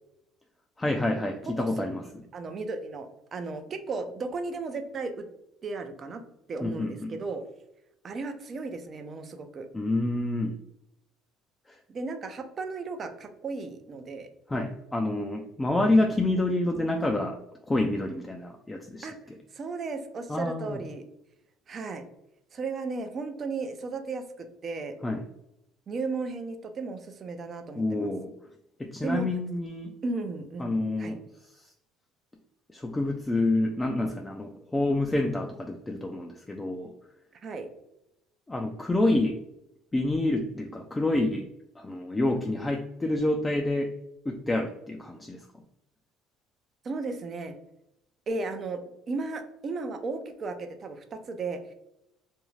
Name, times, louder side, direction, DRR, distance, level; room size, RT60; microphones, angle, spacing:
voice 1, 0.8-2.0 6.6-7.2 9.7-10.6 11.7-11.8 14.5-19.1 20.3-20.8 25.0-25.2 27.8-28.3 28.8-29.9 30.6-31.7 32.7-36.9 38.5-39.4 39.9-41.5 41.8-43.9 44.3-45.5, left 2 dB, 15° left, 2 dB, 0.4 m, -28 dB
voice 2, 2.3-5.2 5.6-6.2 6.5-7.4 8.0-9.7 11.9-14.3 19.0-19.2 19.5-21.0 21.7-22.0 22.5-24.9 25.9-28.1 29.0-29.3 30.0-31.2 37.4-37.7 46.8-47.5 48.3-48.8 49.1-51.7, right 3 dB, 45° right, 7 dB, 0.5 m, -35 dB
2.6 x 2.3 x 3.1 m, 0.85 s
supercardioid pair, 75°, 0 cm